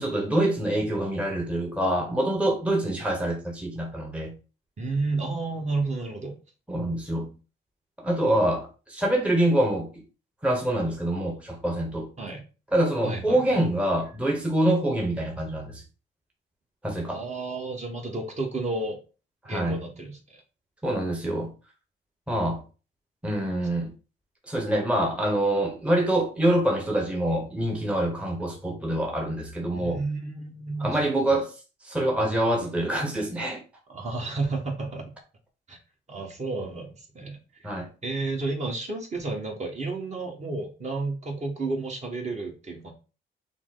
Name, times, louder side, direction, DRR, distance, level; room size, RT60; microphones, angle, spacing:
voice 1, 0.0-4.3 6.7-7.3 8.0-10.0 10.4-12.1 12.7-15.8 16.8-17.2 19.4-19.8 20.8-21.5 22.3-22.6 23.2-23.9 24.5-30.0 30.8-31.5 31.8-33.6 37.6-37.9, right 1 dB, 5° right, 1.0 m, -25 dB
voice 2, 4.8-6.4 12.2-12.4 13.0-13.4 17.1-19.0 19.5-20.4 29.7-31.4 33.9-35.1 35.7-35.8 36.1-37.4 37.7-42.9, right 3 dB, 35° right, 1.4 m, -31 dB
5.9 x 2.2 x 3.9 m
cardioid pair, 90°, 20 cm